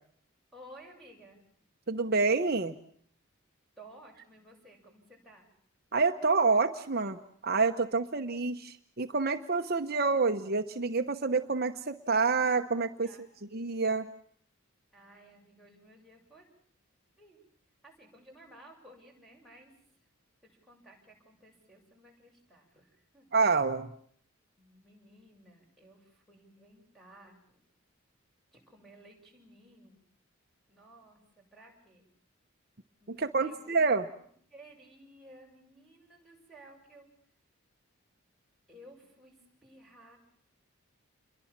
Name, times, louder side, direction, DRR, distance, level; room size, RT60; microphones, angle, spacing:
voice 1, 0.5-1.4 3.8-5.5 13.0-13.2 14.9-16.5 17.2-17.4 17.8-19.7 20.4-23.3 24.6-27.6 28.5-30.0 30.7-32.1 33.0-33.8 34.1-37.1 38.7-40.2, right 1 dB, ahead, 1 dB, 7.5 m, -56 dB
voice 2, 1.9-2.7 5.9-13.1 13.5-14.1 23.3-23.9 33.1-34.1, right 4 dB, 45° right, 7 dB, 1.0 m, -28 dB
28.5 x 23.0 x 7.4 m, 0.62 s
head